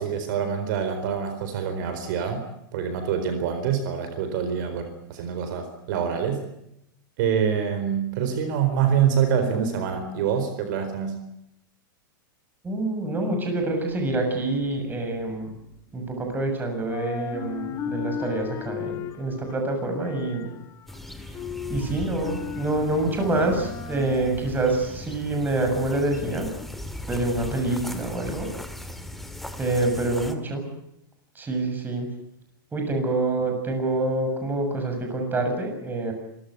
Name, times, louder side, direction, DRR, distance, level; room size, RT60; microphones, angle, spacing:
voice 1, 0.0-2.4 2.7-6.4 7.2-11.2, right 7 dB, 65° right, 8 dB, 4.3 m, -25 dB
voice 2, 12.6-15.5 15.9-20.5 21.3-21.4 21.7-26.5 27.1-28.5 29.6-30.6 31.4-32.1 32.7-36.1, right 2 dB, 15° right, 4 dB, 7.0 m, -26 dB
sound 1, 13.6-16.5 16.8-24.9, left 8 dB, 30° left, 2.1 m, -37 dB
sound 2, 20.9-30.4, left 1 dB, ahead, 2.1 m, -38 dB
26.5 x 15.5 x 9.4 m, 0.82 s
hypercardioid pair, 130°, 11 cm